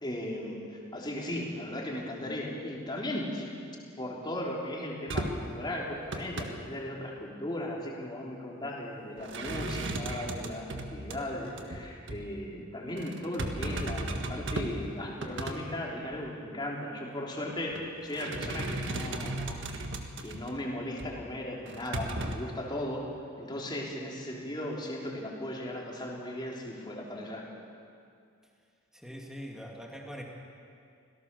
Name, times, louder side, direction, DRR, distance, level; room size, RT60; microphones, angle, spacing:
voice 1, 0.0-3.5 4.0-19.6 20.2-23.1 23.4-27.5, left 1 dB, 20° left, -2 dB, 3.4 m, -37 dB
sound 1, 5.1-5.5 5.9-6.5 9.2-11.2 11.6-11.8 12.1-12.2 13.0-14.8 15.1-15.6 16.1-16.2 17.5-17.8 18.1-20.5 21.0-21.1 21.7-22.4, right 2 dB, 60° right, 1.7 m, -35 dB
voice 2, 28.9-30.2, equal, 5° right, 0 dB, 2.3 m, -42 dB
25.5 x 17.0 x 6.9 m, 2.4 s
head